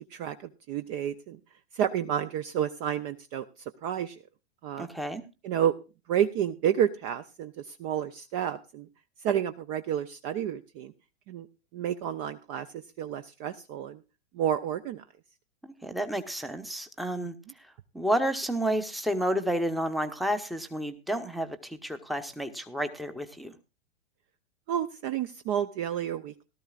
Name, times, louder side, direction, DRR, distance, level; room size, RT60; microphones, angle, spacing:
voice 1, 0.0-1.4 1.7-3.5 3.8-4.2 4.6-4.9 5.4-5.7 6.1-8.9 9.2-10.9 11.3-11.5 11.7-14.0 14.3-15.0 17.1-17.3 24.7-26.4, right 9 dB, 30° right, 11 dB, 0.5 m, -30 dB
voice 2, 4.8-5.2 15.6-17.3 17.9-23.5, right 1 dB, ahead, 9 dB, 0.8 m, -30 dB
17.5 x 12.5 x 2.4 m, 0.29 s
hypercardioid pair, 115°, 36 cm